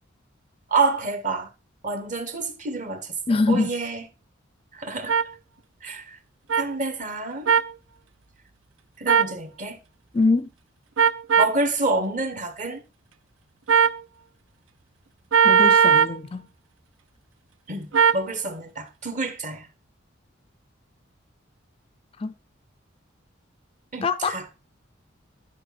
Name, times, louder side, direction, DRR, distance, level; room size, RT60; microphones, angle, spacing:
voice 1, 0.7-1.5 1.8-3.1 3.5-4.0 4.7-5.1 5.8-6.2 6.6-7.5 9.0-9.8 11.4-12.8 17.7-17.9 18.1-19.7 23.9-24.4, right 3 dB, 40° right, 1.3 m, -28 dB
voice 2, 3.3-3.7 10.1-10.5 15.4-16.5 22.2-22.3 24.0-24.4, left 3 dB, 30° left, 0.4 m, -23 dB
sound 1, 5.1-5.2 6.5-6.6 7.5-7.7 9.1-9.3 11.0-11.6 13.7-14.0 15.3-16.2 17.9-18.2, right 7 dB, 80° right, 0.6 m, -18 dB
11.0 x 5.9 x 4.2 m
head